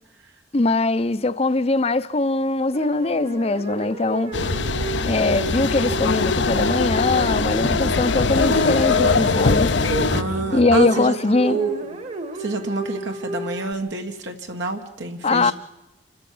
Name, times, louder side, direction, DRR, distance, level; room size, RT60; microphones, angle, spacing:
voice 1, 0.5-4.3 5.0-9.7 10.5-11.6 15.2-15.5, left 2 dB, 35° left, 0.6 m, -21 dB
sound 1, 2.7-13.7, right 3 dB, 40° right, 1.5 m, -32 dB
sound 2, 4.3-10.2, left 4 dB, 75° left, 0.7 m, -22 dB
sound 3, 4.4-10.8, equal, 60° right, 3.6 m, -31 dB
voice 2, 10.1-12.0 12.4-15.5, right 3 dB, 75° right, 1.7 m, -28 dB
27.0 x 13.5 x 7.8 m
head